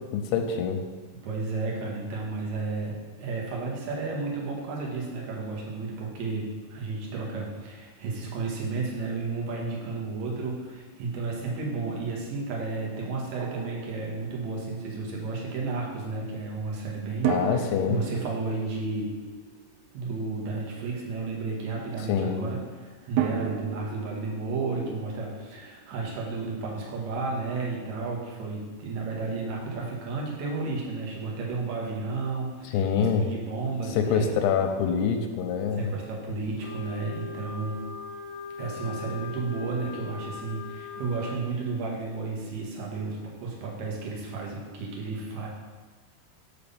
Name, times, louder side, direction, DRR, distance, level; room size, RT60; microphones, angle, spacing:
voice 1, 0.1-0.8 17.2-18.0 22.1-22.5 32.7-33.3 33.9-35.9, left 7 dB, 90° left, 6 dB, 2.9 m, -25 dB
voice 2, 1.2-19.1 19.9-34.3 35.7-37.8 38.6-45.5, right 3 dB, 55° right, -3 dB, 2.3 m, -32 dB
Drum, 13.4-14.8 17.2-20.2 23.2-26.0, right 9 dB, 80° right, 2.6 m, -35 dB
Wind instrument woodwind instrument, 36.6-41.4, left 5 dB, 65° left, 2.6 m, -40 dB
6.1 x 5.5 x 6.9 m, 1.4 s
omnidirectional pair, 4.7 m